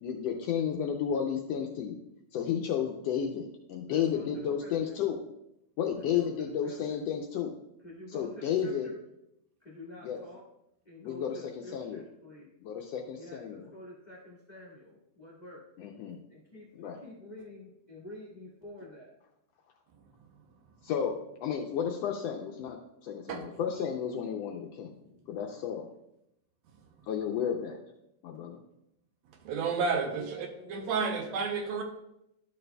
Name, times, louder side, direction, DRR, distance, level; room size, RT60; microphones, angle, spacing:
voice 1, 0.0-2.0 2.3-5.2 5.8-7.5 8.1-8.9 10.0-10.2 11.0-11.4 11.7-12.0 12.6-13.7 15.8-16.2 16.8-17.0 20.8-21.1 21.4-24.9 25.3-25.9 27.1-27.8 28.2-28.6, left 8 dB, 75° left, 2 dB, 1.5 m, -32 dB
voice 2, 3.9-5.0 6.1-7.0 7.8-8.9 9.6-10.4 10.8-12.5 13.2-15.6 16.3-19.2 24.8-25.4 30.1-31.4, left 1 dB, 25° left, -5 dB, 0.9 m, -48 dB
voice 3, 29.5-31.8, right 5 dB, 75° right, 4 dB, 1.9 m, -31 dB
12.0 x 6.5 x 2.2 m, 0.81 s
omnidirectional pair, 3.3 m